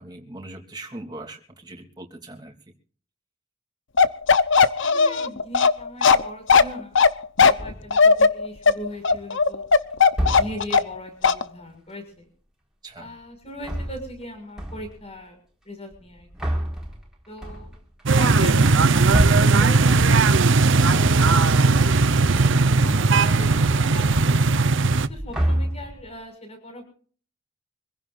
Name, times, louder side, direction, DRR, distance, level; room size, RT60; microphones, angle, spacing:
voice 1, 0.0-2.5 12.8-13.1, right 2 dB, 20° right, 2 dB, 3.0 m, -40 dB
Bark, 4.0-11.0 11.2-11.4, left 5 dB, 65° left, 0.9 m, -16 dB
voice 2, 4.8-7.0 7.6-9.7 10.3-12.3 13.0-15.4 15.6-16.5 17.3-17.8 18.2-22.0 22.7-24.4 25.0-26.9, left 1 dB, 30° left, 6 dB, 6.0 m, -38 dB
sound 1, 7.6-8.0 8.8-9.4 10.1-10.9 13.4-14.3 14.6-15.1 15.9-20.5 20.8-22.1 22.3-22.8 23.1-24.7 25.0-26.1, equal, 5° right, 4.3 m, -30 dB
sound 2, 18.1-25.1, right 3 dB, 65° right, 0.8 m, -18 dB
25.5 x 16.0 x 2.6 m, 0.43 s
head